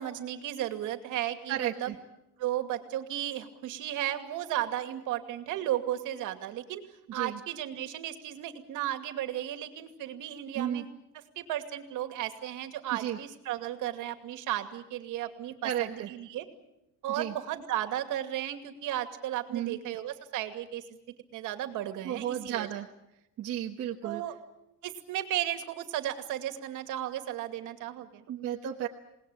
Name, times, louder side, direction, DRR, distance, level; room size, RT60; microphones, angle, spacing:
voice 1, 0.0-1.9 2.4-6.8 7.1-10.9 11.4-16.4 17.0-20.8 21.3-22.7 24.0-24.4 24.8-28.2, right 12 dB, 60° right, 7 dB, 2.6 m, -34 dB
voice 2, 1.5-1.9 7.1-7.4 10.5-10.8 12.9-13.2 15.6-16.1 17.1-17.3 19.5-19.8 22.0-22.9 23.4-24.2 28.3-28.9, right 11 dB, 45° right, 1 dB, 1.3 m, -33 dB
28.5 x 19.5 x 8.7 m, 0.90 s
cardioid pair, 155°, 35 cm